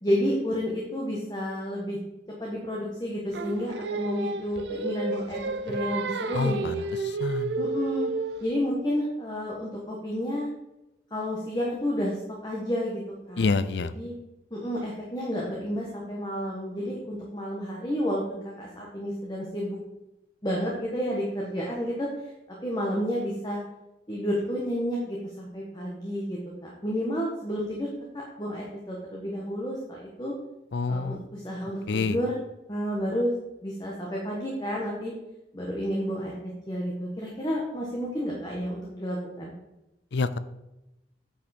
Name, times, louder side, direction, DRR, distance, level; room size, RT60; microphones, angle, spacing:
voice 1, 0.0-2.0 2.4-6.6 7.6-8.1 8.4-10.5 11.1-13.0 13.3-13.4 13.7-14.1 14.5-19.8 20.4-22.1 22.6-23.6 24.1-27.9 28.4-30.3 30.9-32.4 32.7-33.3 33.6-35.1 35.5-39.5, equal, 25° left, -3 dB, 1.4 m, -30 dB
Singing, 3.3-8.5, right 3 dB, 75° right, 0.6 m, -31 dB
voice 2, 7.2-7.5 13.4-13.9 30.7-31.2 31.9-32.2 40.1-40.4, left 4 dB, 75° left, 14 dB, 0.5 m, -26 dB
8.8 x 5.6 x 4.3 m, 0.94 s
head